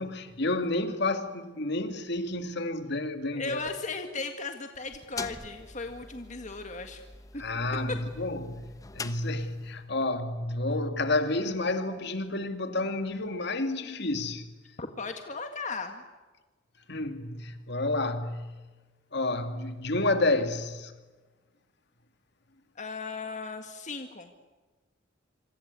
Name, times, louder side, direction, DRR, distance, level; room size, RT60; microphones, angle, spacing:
voice 1, 0.0-3.6 7.4-14.5 16.9-18.6 19.1-20.9, left 2 dB, 60° left, 2.4 m, -30 dB
voice 2, 3.3-7.0 7.3-7.4 7.9-8.0 14.8-16.0 22.8-24.3, left 3 dB, 40° left, 1.8 m, -36 dB
sound 1, 4.7-9.8, left 3 dB, 15° left, 1.1 m, -44 dB
27.0 x 26.0 x 8.3 m
head